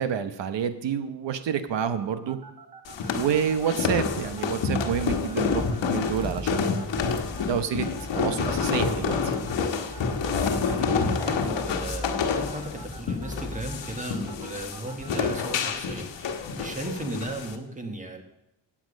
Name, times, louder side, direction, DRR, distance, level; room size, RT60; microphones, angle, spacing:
voice 1, 0.0-2.4 3.2-6.7 7.4-7.9 8.1-9.3, right 8 dB, 75° right, 10 dB, 1.0 m, -28 dB
sound 1, 2.0-15.7, right 5 dB, 55° right, 1.5 m, -46 dB
sound 2, 2.8-17.5, left 5 dB, 85° left, 1.3 m, -28 dB
sound 3, 4.3-14.7, left 2 dB, 10° left, 0.7 m, -40 dB
voice 2, 5.3-5.7 6.6-6.8 10.4-18.2, right 1 dB, 15° right, 4 dB, 1.5 m, -36 dB
16.0 x 8.8 x 5.2 m, 0.85 s
wide cardioid pair, 175°, 43 cm